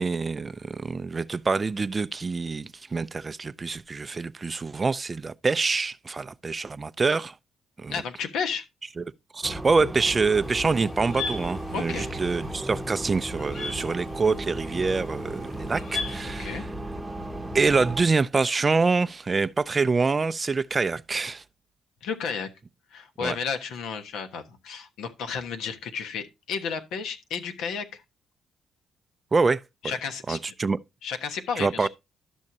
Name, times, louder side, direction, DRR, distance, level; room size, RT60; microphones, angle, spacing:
voice 1, 0.0-7.3 7.8-7.9 9.0-9.1 9.3-16.7 17.5-21.4 23.2-23.4 29.3-29.9 30.3-30.8 31.6-31.9, right 4 dB, 30° right, 0.4 m, -26 dB
voice 2, 7.9-8.6 11.7-12.1 16.4-16.6 22.0-22.5 22.9-28.0 29.8-30.4 31.0-31.9, left 6 dB, 85° left, 1.2 m, -32 dB
sound 1, 9.4-18.1, right 1 dB, 5° right, 0.9 m, -35 dB
sound 2, 10.3-16.4, left 4 dB, 55° left, 3.7 m, -39 dB
12.0 x 6.3 x 2.8 m
cardioid pair, 90°, 0 cm